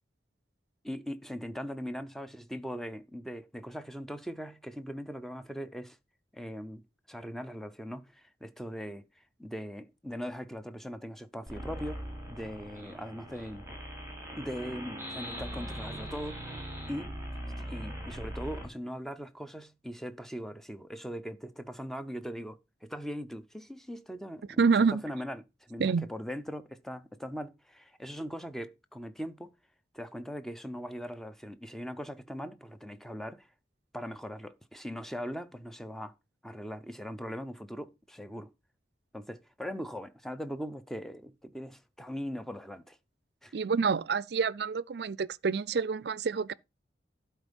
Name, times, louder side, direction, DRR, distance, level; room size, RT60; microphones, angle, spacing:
voice 1, 0.8-6.0 6.3-6.8 7.1-13.7 14.4-16.5 16.9-17.1 17.6-24.6 25.0-29.5 29.9-33.5 33.9-36.1 36.4-38.5 39.1-43.0 43.4-43.6, equal, ahead, 0.7 m, -40 dB
sound 1, 11.5-18.7, equal, 15° right, 3.4 m, -40 dB
voice 2, 24.6-25.0 25.8-26.0 43.5-46.5, right 5 dB, 65° right, 0.4 m, -27 dB
12.0 x 4.4 x 5.3 m
head